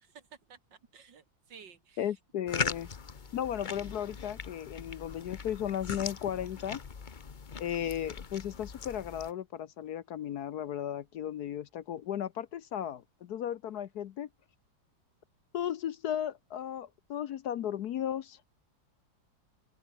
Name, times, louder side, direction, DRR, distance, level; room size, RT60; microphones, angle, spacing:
voice 1, 0.0-2.0, right 6 dB, 70° right, 2.6 m, -54 dB
voice 2, 2.0-2.9 3.3-6.8 7.6-14.3 15.5-18.4, left 10 dB, 65° left, 1.2 m, -35 dB
sound 1, 2.5-9.3, left 5 dB, 35° left, 0.9 m, -40 dB
open air
omnidirectional pair, 2.0 m